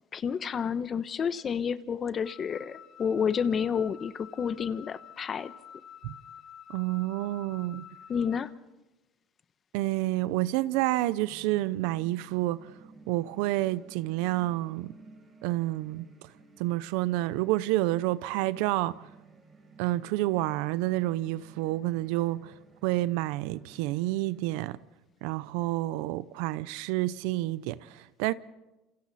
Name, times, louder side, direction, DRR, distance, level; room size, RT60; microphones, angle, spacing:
voice 1, 0.1-5.5 8.1-8.5, left 7 dB, 35° left, 1.1 m, -30 dB
Wind instrument woodwind instrument, 2.2-8.5, left 9 dB, 60° left, 2.2 m, -49 dB
voice 2, 6.7-7.9 9.7-12.6 13.1-14.9 15.4-16.0 16.6-19.0 19.8-22.5 22.8-24.8 25.2-28.3, right 17 dB, 80° right, 0.7 m, -29 dB
sound 1, 11.3-24.7, right 4 dB, 35° right, 4.4 m, -55 dB
28.0 x 27.0 x 4.2 m
supercardioid pair, 105°, 0 cm